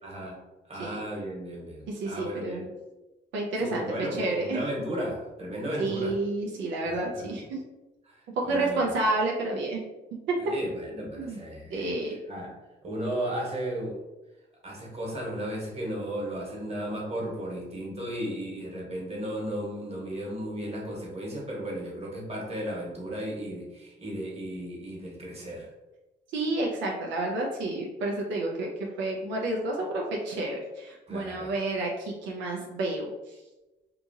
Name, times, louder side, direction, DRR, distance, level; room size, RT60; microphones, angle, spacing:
voice 1, 0.0-0.4 0.7-2.7 3.6-6.2 6.8-7.3 8.0-8.9 10.4-11.9 12.3-12.5 12.8-14.0 14.6-25.7 31.1-31.5, right 1 dB, 35° right, -3 dB, 1.2 m, -35 dB
voice 2, 1.9-2.6 3.3-3.8 4.1-4.6 5.8-7.6 8.5-9.8 10.3-10.4 11.1-11.4 11.7-12.2 26.3-28.7 29.0-33.4, right 2 dB, 90° right, -1 dB, 0.5 m, -30 dB
2.8 x 2.4 x 2.6 m, 1.0 s
cardioid pair, 75°, 19 cm